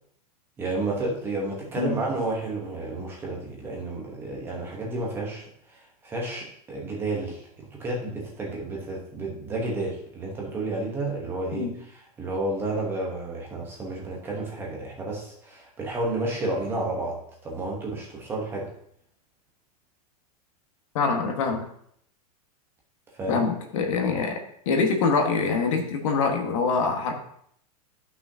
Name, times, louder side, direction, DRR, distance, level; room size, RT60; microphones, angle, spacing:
voice 1, 0.6-11.7 12.2-18.7 23.2-23.4, right 2 dB, 10° right, -2 dB, 1.0 m, -31 dB
voice 2, 20.9-21.7 23.3-24.4 24.6-27.1, left 4 dB, 55° left, 3 dB, 1.5 m, -24 dB
12.5 x 5.8 x 2.8 m, 0.67 s
supercardioid pair, 175°, 20 cm